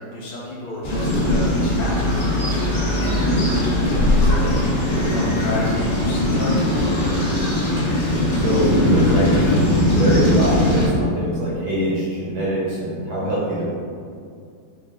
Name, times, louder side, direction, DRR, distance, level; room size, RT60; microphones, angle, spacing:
voice 1, 0.0-2.6 2.9-3.2 3.8-7.3, left 1 dB, 85° left, -5 dB, 1.8 m, -31 dB
sound 1, 0.8-10.9, left 1 dB, 50° left, 1.7 m, -19 dB
voice 2, 3.0-3.3 8.3-13.6, right 1 dB, 65° right, -7 dB, 1.0 m, -23 dB
5.0 x 2.3 x 3.5 m, 2.3 s
omnidirectional pair, 2.4 m